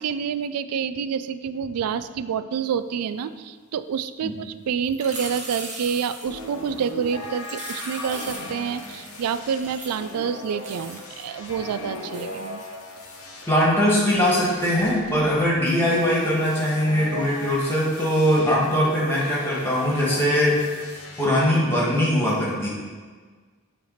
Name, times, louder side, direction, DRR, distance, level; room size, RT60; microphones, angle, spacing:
voice 1, 0.0-12.6, right 7 dB, 90° right, 13 dB, 0.4 m, -28 dB
sound 1, 4.9-6.4 7.4-9.2 9.5-10.1 10.6-11.4 11.9-12.7 17.9-18.0, right 2 dB, 30° right, 1.1 m, -38 dB
sound 2, 6.3-22.0, left 2 dB, 85° left, 1.1 m, -38 dB
voice 2, 13.5-20.7 21.2-22.7, equal, 10° left, -5 dB, 1.6 m, -21 dB
7.7 x 3.3 x 6.4 m, 1.5 s
head